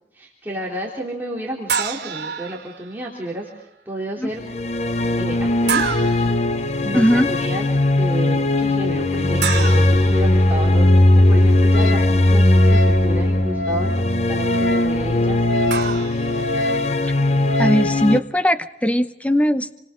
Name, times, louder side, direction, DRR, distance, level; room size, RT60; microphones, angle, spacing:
voice 1, 0.1-4.4 5.2-5.9 6.8-7.7 8.0-15.9, right 1 dB, 10° right, -4 dB, 3.7 m, -31 dB
sound 1, 1.7-3.0 5.7-6.4 9.4-11.0 15.7-16.9, right 6 dB, 75° right, 2.9 m, -28 dB
sound 2, 4.4-18.2, left 1 dB, 40° left, 0.7 m, -18 dB
voice 2, 6.9-7.3 17.6-19.8, equal, 10° left, 10 dB, 0.9 m, -19 dB
Wind instrument woodwind instrument, 11.7-17.9, left 1 dB, 85° left, 1.4 m, -28 dB
28.5 x 26.0 x 3.9 m, 0.84 s
head